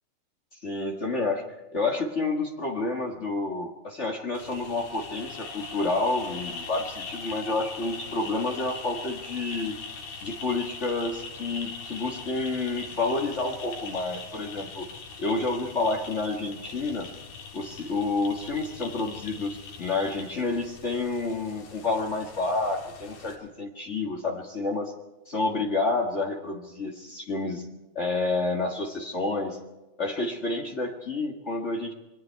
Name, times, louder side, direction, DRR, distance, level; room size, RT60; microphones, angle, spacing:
voice 1, 0.6-1.4 1.7-9.7 10.2-14.9 15.2-17.1 17.5-24.9 25.2-27.7 27.9-29.6 30.0-31.9, left 3 dB, 70° left, 0 dB, 0.6 m, -29 dB
sound 1, 4.3-23.4, left 4 dB, 90° left, 5.5 m, -41 dB
27.0 x 22.0 x 4.6 m, 1.1 s
omnidirectional pair, 4.4 m